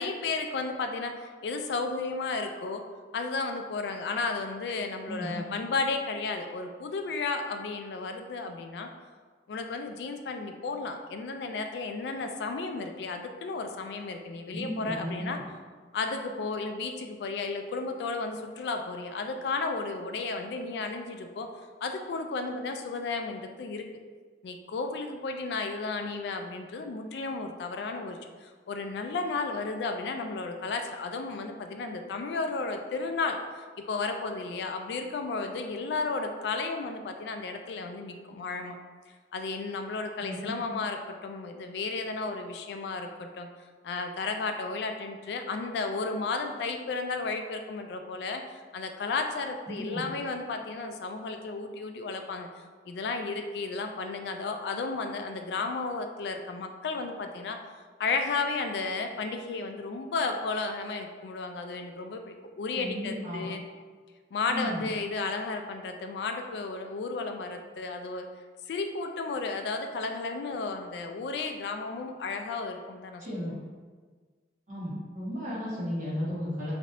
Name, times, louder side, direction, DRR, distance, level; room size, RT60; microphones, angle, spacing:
voice 1, 0.0-2.8 3.1-8.9 9.5-15.4 15.9-21.5 21.8-23.9 24.4-38.8 39.3-43.5 43.8-57.6 58.0-63.6 64.3-68.3 68.7-73.5, left 3 dB, 70° left, 6 dB, 0.3 m, -33 dB
voice 2, 5.0-5.4 14.5-15.3 40.2-40.6 49.7-50.0 62.7-63.4 64.5-64.8 73.2-73.5 74.7-76.7, equal, 45° right, -9 dB, 1.2 m, -35 dB
3.2 x 2.7 x 2.5 m, 1.5 s
head